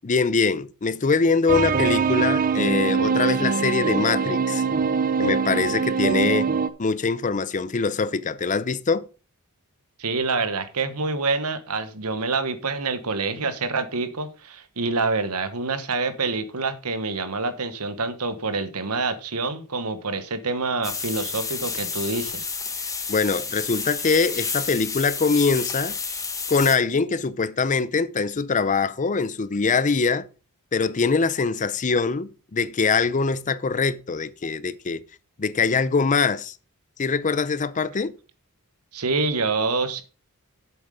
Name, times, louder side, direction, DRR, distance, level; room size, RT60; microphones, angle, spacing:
voice 1, 0.0-4.6 5.2-6.5 6.8-9.1 23.1-26.0 26.5-30.3 30.7-35.0 35.4-36.6 37.0-38.2, left 4 dB, 35° left, 0.5 m, -23 dB
sound 1, 1.5-6.7, right 5 dB, 40° right, 0.6 m, -23 dB
voice 2, 10.0-22.5 38.9-40.0, right 3 dB, 80° right, 1.3 m, -26 dB
sound 2, 20.8-26.8, left 5 dB, 15° left, 1.1 m, -30 dB
8.1 x 7.1 x 5.0 m
head